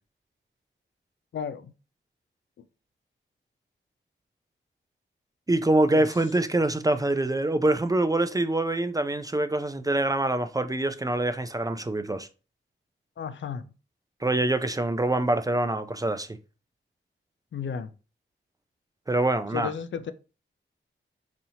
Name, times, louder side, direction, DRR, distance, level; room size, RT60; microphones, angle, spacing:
voice 1, 1.3-1.7 2.6-2.7 5.9-6.1 13.2-13.7 17.5-17.9 19.5-20.1, left 7 dB, 65° left, 0.4 m, -33 dB
voice 2, 5.5-12.3 14.2-16.3 19.1-19.7, right 2 dB, 15° right, 0.4 m, -25 dB
4.2 x 2.7 x 2.7 m
cardioid pair, 55°, 21 cm